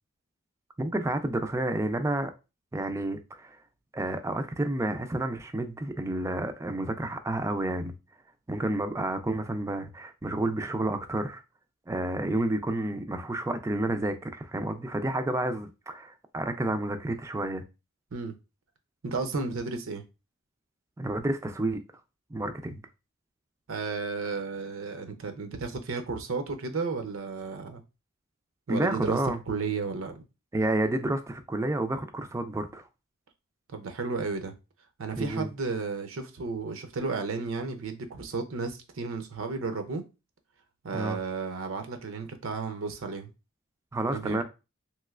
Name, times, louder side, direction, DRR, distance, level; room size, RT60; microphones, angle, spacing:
voice 1, 0.8-2.3 2.7-3.6 3.9-7.9 8.5-11.4 11.9-17.6 21.0-21.8 22.3-22.8 28.7-29.4 30.5-32.8 35.2-35.5 40.9-41.2 43.9-44.4, right 1 dB, 15° right, 0.3 m, -30 dB
voice 2, 19.0-20.0 23.7-27.8 28.7-29.2 29.5-30.2 33.7-34.5 35.0-40.0 40.8-43.3 44.1-44.4, right 4 dB, 70° right, 0.5 m, -33 dB
3.1 x 2.9 x 2.3 m
head